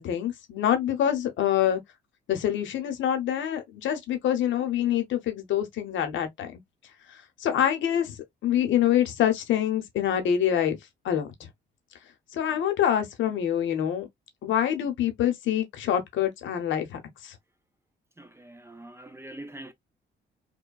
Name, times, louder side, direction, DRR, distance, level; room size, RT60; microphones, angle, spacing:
voice 1, 0.0-1.8 2.3-6.5 7.4-8.1 8.4-10.8 11.0-11.5 12.3-14.1 14.4-17.3, left 10 dB, 75° left, 0.8 m, -26 dB
voice 2, 18.2-19.7, right 1 dB, 15° right, 0.5 m, -44 dB
2.9 x 2.2 x 2.2 m
cardioid pair, 90°, 20 cm